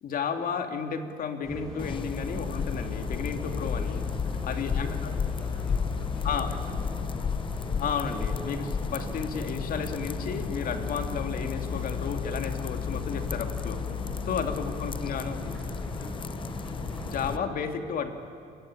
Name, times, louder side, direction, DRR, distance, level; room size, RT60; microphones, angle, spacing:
voice 1, 0.0-4.0 4.5-5.1 6.2-6.5 7.8-13.8 14.3-15.4 17.1-18.1, left 6 dB, 55° left, 6 dB, 2.7 m, -33 dB
sound 1, 1.4-17.5, right 1 dB, 5° left, 6.2 m, -39 dB
sound 2, 1.8-17.4, left 7 dB, 30° left, 0.6 m, -33 dB
voice 2, 4.2-7.2 14.2-15.0 15.3-16.3, left 4 dB, 80° left, 4 dB, 5.8 m, -52 dB
28.5 x 22.0 x 8.8 m, 2.4 s
cardioid pair, 110°, 17 cm